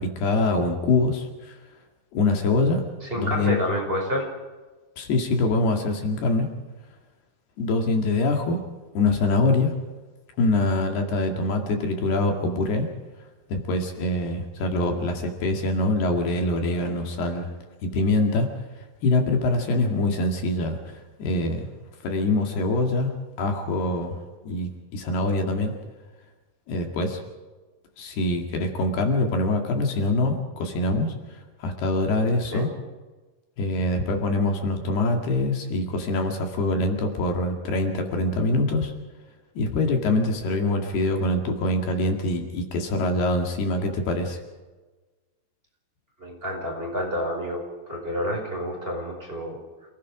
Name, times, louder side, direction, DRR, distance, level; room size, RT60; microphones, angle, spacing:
voice 1, 0.0-1.6 2.1-2.8 3.1-3.6 5.0-6.5 7.6-8.6 9.0-9.7 10.4-12.9 13.5-17.5 17.8-18.5 19.0-21.7 22.0-23.1 23.4-24.2 24.4-25.7 26.7-27.2 28.0-31.1 31.6-32.7 33.6-38.9 39.6-44.4, left 2 dB, 70° left, 3 dB, 4.1 m, -24 dB
voice 2, 3.0-4.3 32.5-32.7 46.2-49.6, equal, 15° right, 0 dB, 5.4 m, -29 dB
29.0 x 18.0 x 5.0 m, 1.3 s
omnidirectional pair, 4.8 m